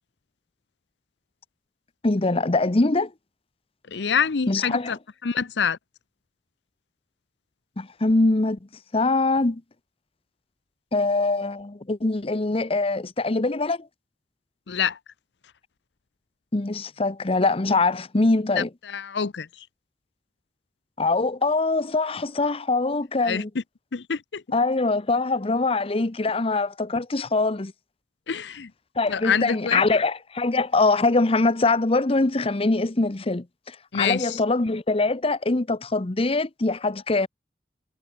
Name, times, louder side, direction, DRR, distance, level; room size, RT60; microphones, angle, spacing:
voice 1, 2.0-3.1 4.5-4.9 7.8-8.6 8.9-9.6 10.9-13.9 16.5-18.7 21.0-23.5 24.5-27.7 29.0-37.3, left 3 dB, 35° left, 0.8 m, -23 dB
voice 2, 3.9-5.0 5.2-5.8 14.7-15.0 18.6-19.5 23.2-23.4 23.9-24.4 28.3-28.7 29.1-29.8 33.9-34.4, left 6 dB, 85° left, 0.7 m, -26 dB
head